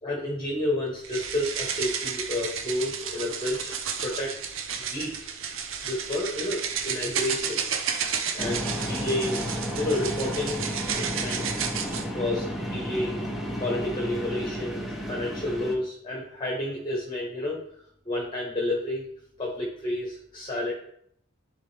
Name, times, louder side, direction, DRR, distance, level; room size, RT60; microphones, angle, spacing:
voice 1, 0.0-4.4 4.7-7.7 8.3-9.4 9.8-10.6 11.0-13.2 13.6-17.6 18.0-19.1 19.4-20.7, left 1 dB, 25° left, -2 dB, 1.3 m, -30 dB
sound 1, 1.0-12.1, right 7 dB, 75° right, 0.7 m, -32 dB
sound 2, 8.4-15.8, equal, ahead, 0.9 m, -32 dB
11.0 x 3.7 x 3.4 m, 0.68 s
head